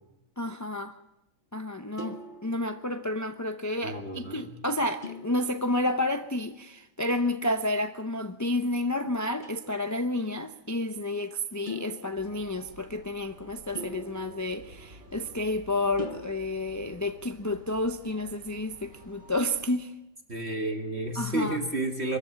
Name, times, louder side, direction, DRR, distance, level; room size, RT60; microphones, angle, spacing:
voice 1, 0.4-1.0 1.5-2.2 2.4-19.9 21.2-21.6, left 1 dB, 20° left, 7 dB, 0.5 m, -30 dB
sound 1, 2.0-3.3 5.0-6.1 7.5-8.0 9.4-9.9 11.7-12.8 13.7-15.4 16.0-16.2, left 2 dB, 35° left, 1.2 m, -43 dB
voice 2, 3.8-4.5 20.3-22.2, right 1 dB, 45° right, 3 dB, 2.2 m, -31 dB
sound 2, 12.1-19.7, right 1 dB, 75° right, 4.5 m, -52 dB
24.5 x 14.5 x 8.7 m, 0.93 s
omnidirectional pair, 1.6 m